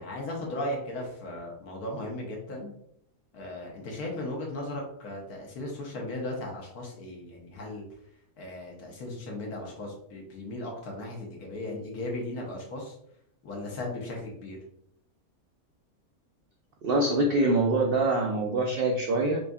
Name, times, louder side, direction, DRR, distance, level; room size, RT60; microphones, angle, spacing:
voice 1, 0.0-2.7 3.3-7.8 8.4-13.0 13.4-14.6, left 1 dB, 80° left, -1 dB, 1.5 m, -36 dB
voice 2, 16.8-19.4, right 2 dB, 85° right, 1 dB, 0.5 m, -24 dB
4.8 x 2.6 x 2.3 m, 0.73 s
omnidirectional pair, 1.6 m